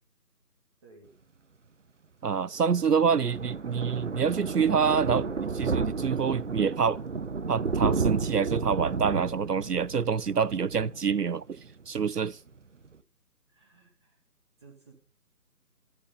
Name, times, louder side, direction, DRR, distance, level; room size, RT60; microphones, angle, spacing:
voice 1, 0.8-1.3 13.5-14.2 14.6-15.0, right 3 dB, 15° right, 2.6 m, -56 dB
voice 2, 2.2-7.0 7.5-11.6 11.9-12.4, right 6 dB, 70° right, 0.9 m, -27 dB
Thunder, 2.3-11.7 12.0-12.3 12.6-12.7 12.9-13.0, right 4 dB, 45° right, 1.2 m, -32 dB
13.5 x 12.5 x 5.6 m
figure-of-eight pair, 170°, 49 cm